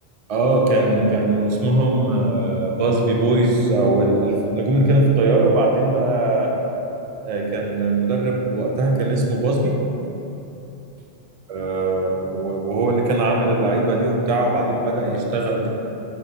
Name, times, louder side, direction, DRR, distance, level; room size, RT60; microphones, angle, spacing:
voice 1, 0.3-6.6 7.2-9.8 11.5-15.7, right 2 dB, 60° right, 0 dB, 0.3 m, -20 dB
5.2 x 2.4 x 3.9 m, 3.0 s
omnidirectional pair, 1.1 m